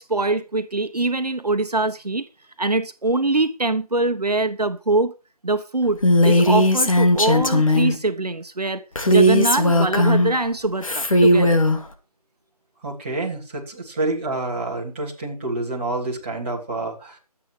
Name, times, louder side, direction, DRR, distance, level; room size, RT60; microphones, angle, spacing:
voice 1, 0.0-2.3 2.6-5.1 5.4-6.0 6.2-11.6, right 2 dB, 80° right, 1.2 m, -23 dB
Female speech woman speaking, 6.0-7.9 9.0-10.4 10.8-11.8, left 1 dB, 55° left, 2.6 m, -17 dB
voice 2, 12.8-17.2, right 2 dB, 20° right, 2.9 m, -28 dB
24.5 x 8.3 x 3.3 m
figure-of-eight pair, 165°, 20 cm